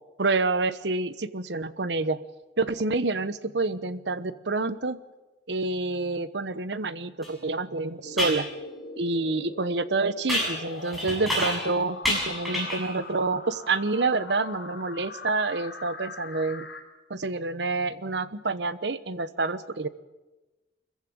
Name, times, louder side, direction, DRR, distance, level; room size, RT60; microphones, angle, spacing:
voice 1, 0.2-2.2 2.6-5.0 5.5-8.5 9.0-16.7 17.1-19.9, right 3 dB, 70° right, 14 dB, 1.0 m, -28 dB
sound 1, 7.2-7.3 8.2-8.4 10.3-11.7 12.0-12.9, equal, ahead, 6.9 m, -28 dB
sound 2, 8.0-16.8, left 2 dB, 70° left, 4.0 m, -42 dB
24.5 x 15.0 x 8.8 m, 1.1 s
head